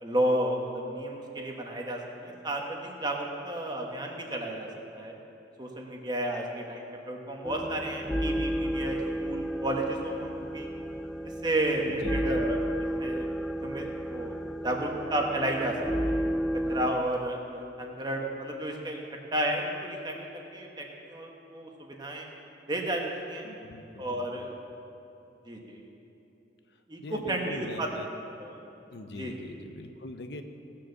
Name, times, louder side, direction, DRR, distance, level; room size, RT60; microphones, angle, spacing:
voice 1, 0.0-4.7 4.9-5.1 5.6-10.7 11.4-13.3 13.6-14.3 14.6-15.8 16.0-16.2 16.7-19.0 19.3-22.3 22.7-23.0 23.3-23.4 24.0-24.5 25.5-25.8 26.9-27.9 28.3-28.5 29.2-29.4, right 1 dB, 25° right, 1 dB, 1.4 m, -32 dB
sound 1, 7.4-16.9, equal, 5° left, 0.3 m, -32 dB
voice 2, 11.9-12.4 23.4-24.5 27.0-28.1 28.9-30.4, left 2 dB, 70° left, 7 dB, 0.8 m, -42 dB
18.0 x 6.8 x 7.1 m, 2.8 s
head